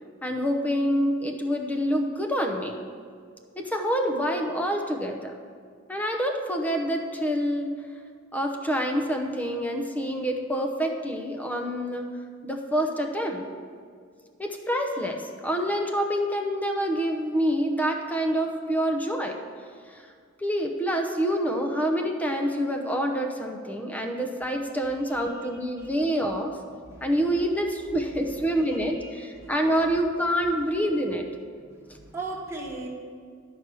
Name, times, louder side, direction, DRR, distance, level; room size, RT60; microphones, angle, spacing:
voice 1, 0.2-2.8 3.6-5.3 5.9-7.7 8.3-12.1 12.4-13.5 14.4-19.3 19.9-20.0 20.4-26.5 27.0-31.3, equal, 10° left, 3 dB, 0.7 m, -27 dB
voice 2, 24.8-25.5 25.8-25.9 26.8-27.4 28.5-29.7 31.6-32.9, right 3 dB, 15° right, -5 dB, 1.3 m, -40 dB
12.0 x 4.7 x 6.1 m, 2.1 s
head